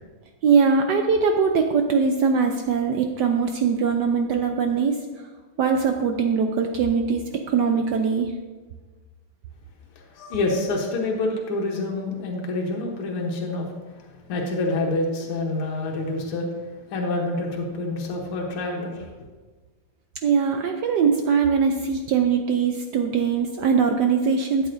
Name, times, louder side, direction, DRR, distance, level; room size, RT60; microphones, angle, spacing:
voice 1, 0.4-5.0 5.6-7.2 7.5-8.3 20.2-24.7, right 5 dB, 75° right, 4 dB, 1.0 m, -21 dB
voice 2, 10.1-13.7 14.0-19.1, left 2 dB, 80° left, -1 dB, 2.0 m, -27 dB
12.5 x 8.3 x 2.6 m, 1.3 s
omnidirectional pair, 2.4 m